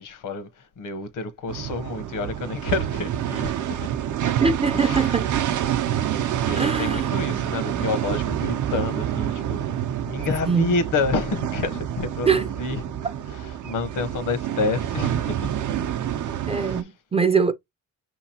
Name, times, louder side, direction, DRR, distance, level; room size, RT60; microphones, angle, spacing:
voice 1, 0.0-3.5 4.7-5.1 6.1-9.8 10.1-13.0 13.6-15.5 16.5-16.9, left 3 dB, 75° left, 0.9 m, -29 dB
sound 1, 1.5-16.8, right 10 dB, 70° right, 0.6 m, -27 dB
voice 2, 4.4-5.4 6.6-7.4 10.5-10.8 12.3-12.5 16.4-17.5, right 5 dB, 20° right, 0.4 m, -23 dB
5.7 x 2.9 x 2.8 m
cardioid pair, 120°, 32 cm